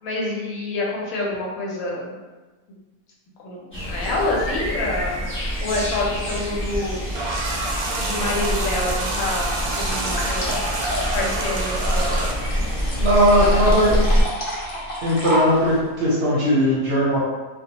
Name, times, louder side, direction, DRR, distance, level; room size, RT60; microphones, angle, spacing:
voice 1, 0.0-2.1 3.4-5.3 5.6-7.5 8.0-10.6 11.1-12.3, left 2 dB, 75° left, -3 dB, 1.0 m, -27 dB
sound 1, 3.7-14.2, equal, 15° left, 0.5 m, -25 dB
sound 2, 7.1-12.3, right 2 dB, 85° right, 1.0 m, -28 dB
sound 3, 9.6-15.8, equal, 55° left, 0.6 m, -31 dB
voice 2, 13.0-14.0 15.0-17.2, equal, 55° right, -7 dB, 0.7 m, -18 dB
2.4 x 2.2 x 2.8 m, 1.2 s
omnidirectional pair, 1.5 m